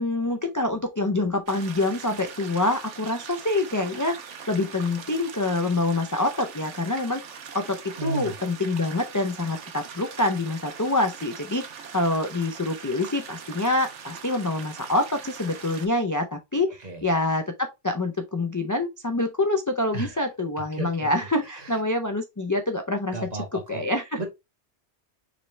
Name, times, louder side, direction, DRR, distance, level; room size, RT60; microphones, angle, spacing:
voice 1, 0.0-7.2 7.5-24.2, left 2 dB, 30° left, 0.3 m, -26 dB
sound 1, 1.5-15.9, right 7 dB, 85° right, 1.1 m, -42 dB
voice 2, 8.0-8.3 16.8-17.1 19.9-20.2 20.7-21.1 21.5-21.8 23.1-23.8 24.2-24.3, right 2 dB, 35° right, 1.4 m, -33 dB
5.1 x 3.2 x 3.2 m
omnidirectional pair, 1.2 m